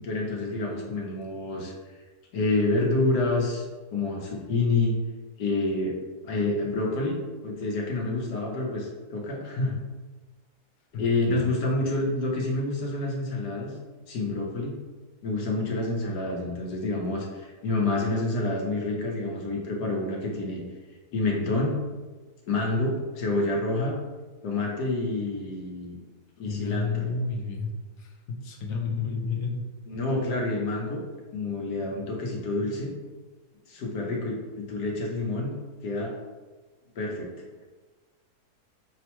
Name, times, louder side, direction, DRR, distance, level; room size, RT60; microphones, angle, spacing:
voice 1, 0.0-1.7 2.3-3.6 3.9-5.0 5.4-5.9 6.2-9.8 11.0-13.7 14.1-14.8 15.2-20.6 21.1-21.7 22.5-24.0 24.4-26.0 26.4-27.1 29.9-31.0 31.3-32.9 33.7-35.5 35.8-36.1 37.0-37.3, left 2 dB, 80° left, -1 dB, 1.4 m, -28 dB
voice 2, 10.9-11.5 26.4-27.7 28.0-29.7, left 4 dB, 65° left, 1 dB, 1.0 m, -31 dB
6.3 x 2.2 x 2.9 m, 1.3 s
omnidirectional pair, 1.7 m